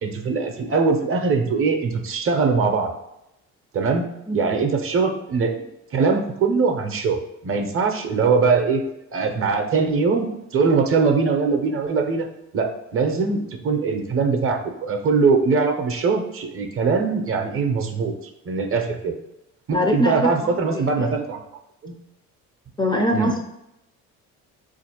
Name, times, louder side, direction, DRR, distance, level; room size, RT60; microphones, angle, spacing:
voice 1, 0.0-2.9 3.7-4.1 4.3-5.6 5.9-7.2 7.4-8.8 9.1-12.3 12.5-18.1 18.5-19.1 19.7-21.4 21.8-22.0 23.1-23.3, right 4 dB, 40° right, 5 dB, 0.6 m, -21 dB
voice 2, 19.7-21.1 22.8-23.5, left 1 dB, 15° left, 2 dB, 0.4 m, -23 dB
4.3 x 2.5 x 2.8 m, 0.85 s
cardioid pair, 105°, 33 cm